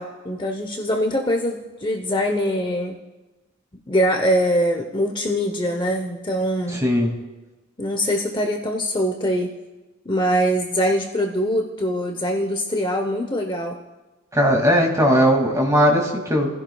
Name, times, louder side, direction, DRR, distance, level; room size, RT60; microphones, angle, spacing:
voice 1, 0.0-3.0 3.9-6.8 7.8-9.5 10.0-13.8, equal, 25° left, 2 dB, 0.9 m, -23 dB
voice 2, 14.3-16.5, equal, 15° right, 0 dB, 2.4 m, -18 dB
30.0 x 15.5 x 2.4 m, 1.2 s
head